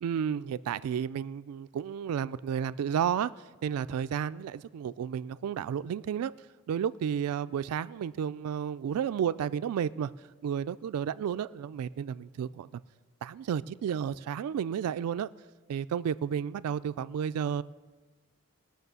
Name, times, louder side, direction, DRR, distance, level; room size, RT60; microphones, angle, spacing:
voice 1, 0.0-3.3 3.6-6.3 6.7-10.1 10.4-12.8 13.2-15.3 15.7-17.6, right 8 dB, 80° right, 16 dB, 0.3 m, -32 dB
19.0 x 6.4 x 6.8 m, 1.4 s
head